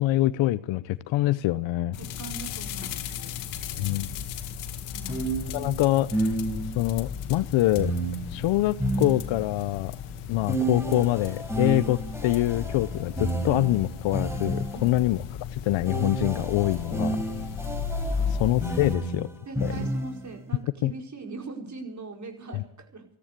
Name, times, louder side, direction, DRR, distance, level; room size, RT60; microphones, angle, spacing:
voice 1, 0.0-2.0 3.8-4.1 5.5-6.3 6.7-7.9 8.3-10.0 10.3-15.2 15.5-17.2 18.4-19.3 19.6-19.7 20.8-20.9 22.5-22.6, left 16 dB, 70° left, 0.8 m, -25 dB
sound 1, 1.9-18.9, left 7 dB, 85° left, 1.9 m, -35 dB
voice 2, 2.0-3.4 4.9-5.3 14.7-15.0 18.1-18.4 19.4-23.1, right 3 dB, 35° right, 4.9 m, -40 dB
sound 2, 4.1-4.2 5.1-6.9 7.8-9.7 10.5-15.0 15.8-20.4, right 2 dB, 5° right, 5.2 m, -31 dB
14.5 x 14.0 x 6.7 m
supercardioid pair, 75°, 48 cm